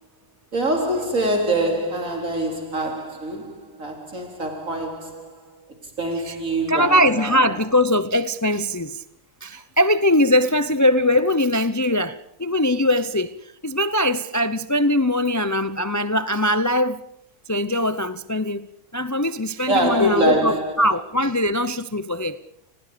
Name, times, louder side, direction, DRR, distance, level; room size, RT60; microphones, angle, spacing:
voice 1, 0.5-5.6 6.0-7.5 19.7-20.8, right 1 dB, 55° right, 4.1 m, -24 dB
voice 2, 6.7-9.0 9.4-17.0 17.5-18.7 18.9-22.4, left 1 dB, 20° left, 0.4 m, -21 dB
29.5 x 20.5 x 5.2 m
omnidirectional pair, 1.7 m